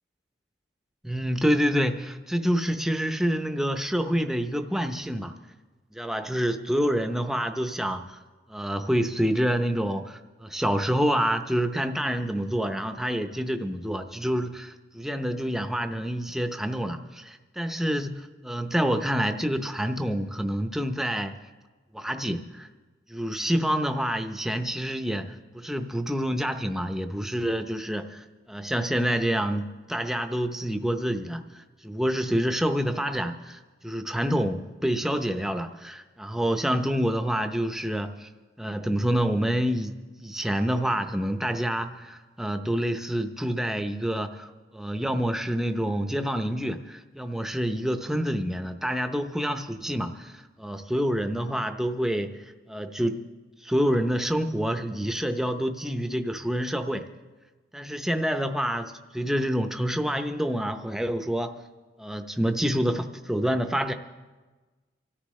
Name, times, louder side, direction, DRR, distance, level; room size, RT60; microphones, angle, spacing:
voice 1, 1.0-5.4 5.9-8.2 8.5-21.4 21.9-22.7 23.1-38.3 38.6-53.2 53.6-57.1 57.7-61.6 62.0-63.9, equal, ahead, 7 dB, 0.7 m, -27 dB
26.5 x 13.5 x 3.2 m, 1.3 s
head